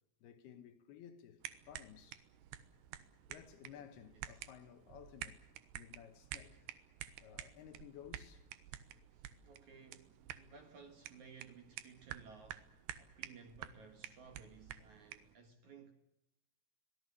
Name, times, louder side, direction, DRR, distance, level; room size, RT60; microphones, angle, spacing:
voice 1, 0.2-2.2 3.3-5.4 5.7-6.7 7.2-8.5, left 9 dB, 70° left, 2.9 m, -56 dB
sound 1, 1.4-15.4, right 12 dB, 75° right, 3.1 m, -51 dB
voice 2, 9.1-15.9, right 5 dB, 55° right, 2.4 m, -58 dB
24.5 x 18.5 x 8.3 m
omnidirectional pair, 5.2 m